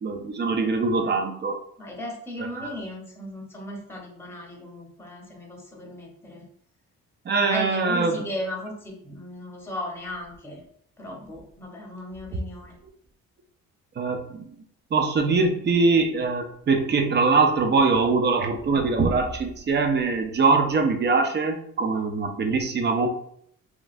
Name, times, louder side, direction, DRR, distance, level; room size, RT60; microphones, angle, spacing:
voice 1, 0.0-1.6 2.6-2.7 7.3-8.2 14.0-14.5 14.9-23.1, right 4 dB, 35° right, 5 dB, 0.5 m, -22 dB
voice 2, 1.8-6.4 7.4-10.6 11.0-12.7, left 1 dB, 10° left, -1 dB, 0.8 m, -36 dB
3.0 x 2.3 x 2.5 m, 0.66 s
cardioid pair, 90°, 30 cm